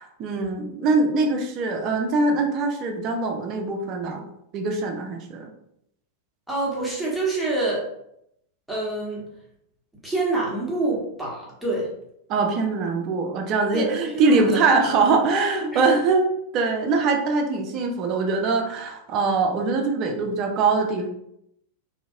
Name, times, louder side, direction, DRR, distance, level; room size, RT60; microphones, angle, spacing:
voice 1, 0.0-4.3 4.5-5.5 12.3-16.2 16.5-21.1, right 3 dB, 35° right, 3 dB, 0.5 m, -23 dB
voice 2, 6.5-7.9 8.7-9.2 10.0-11.9 13.7-14.6 15.7-16.0, right 2 dB, ahead, -6 dB, 1.1 m, -26 dB
2.8 x 2.7 x 2.5 m, 0.77 s
figure-of-eight pair, 90°, 0 cm